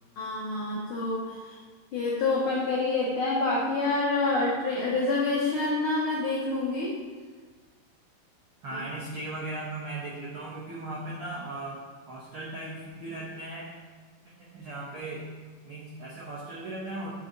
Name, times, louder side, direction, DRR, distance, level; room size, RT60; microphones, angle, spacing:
voice 1, 0.2-1.6 1.9-6.9 8.7-8.8, left 3 dB, 80° left, -6 dB, 1.2 m, -27 dB
voice 2, 8.6-13.7 14.4-15.3 15.6-17.1, right 2 dB, 85° right, -6 dB, 1.1 m, -37 dB
8.7 x 4.2 x 3.9 m, 1.4 s
omnidirectional pair, 3.9 m